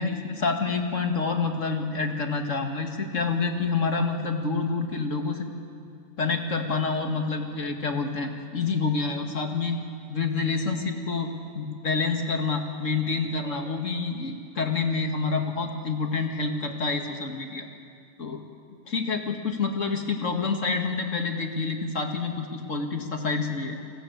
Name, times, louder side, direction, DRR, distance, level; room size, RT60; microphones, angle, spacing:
voice 1, 0.0-5.5 6.2-9.8 10.1-17.7 18.2-18.5 18.9-23.8, left 4 dB, 60° left, 4 dB, 2.2 m, -28 dB
29.0 x 20.5 x 8.1 m, 2.3 s
omnidirectional pair, 1.5 m